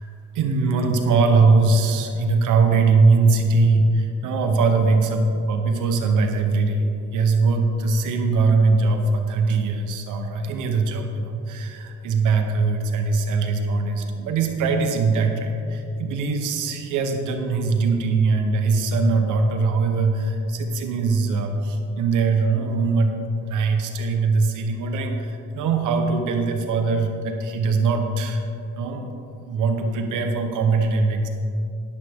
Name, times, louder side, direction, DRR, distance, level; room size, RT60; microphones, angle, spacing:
voice 1, 0.3-6.8 7.1-23.1 23.4-28.4 28.8-29.1 29.4-31.3, right 4 dB, 85° right, 5 dB, 1.2 m, -21 dB
10.5 x 10.5 x 3.7 m, 2.7 s
cardioid pair, 90°, 30 cm